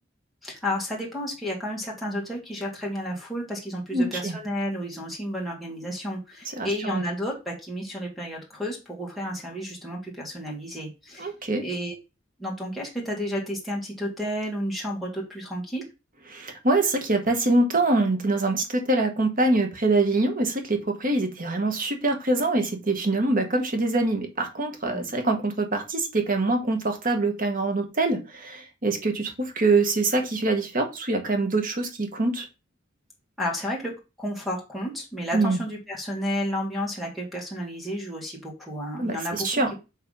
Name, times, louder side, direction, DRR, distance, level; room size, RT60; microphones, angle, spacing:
voice 1, 0.4-11.3 11.6-12.0 12.4-15.8 24.9-25.1 33.4-39.8, equal, ahead, -5 dB, 1.9 m, -32 dB
voice 2, 3.9-4.4 6.6-7.0 11.2-11.6 16.3-32.5 35.3-35.6 39.0-39.7, right 2 dB, 45° right, 5 dB, 1.5 m, -24 dB
6.9 x 3.4 x 5.5 m, 0.28 s
head